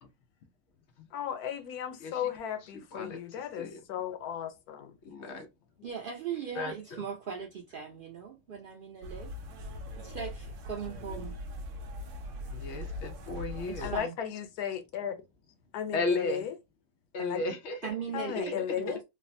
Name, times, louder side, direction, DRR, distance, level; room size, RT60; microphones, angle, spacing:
voice 1, 1.1-4.9 13.8-15.2 15.7-16.5 17.2-17.4 18.1-19.0, left 9 dB, 85° left, 1.1 m, -35 dB
voice 2, 2.7-3.8 5.0-5.5 6.5-7.1 12.5-13.9 15.9-16.5 17.1-17.9 18.3-18.4, left 2 dB, 60° left, 0.9 m, -35 dB
voice 3, 5.8-9.3 10.0-11.3 13.8-14.2 17.8-19.0, right 7 dB, 80° right, 0.4 m, -39 dB
sound 1, 9.0-14.0, left 1 dB, 65° right, 0.9 m, -40 dB
3.2 x 2.1 x 2.5 m
omnidirectional pair, 1.6 m